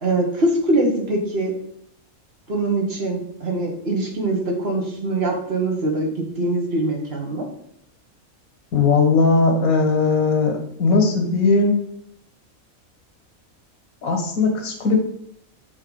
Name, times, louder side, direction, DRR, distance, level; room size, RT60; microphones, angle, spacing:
voice 1, 0.0-1.5 2.5-6.1 6.4-7.5, right 2 dB, 45° right, 1 dB, 1.5 m, -23 dB
voice 2, 8.7-11.8 14.0-15.0, left 4 dB, 85° left, 3 dB, 1.5 m, -18 dB
7.2 x 3.4 x 5.2 m, 0.71 s
omnidirectional pair, 1.5 m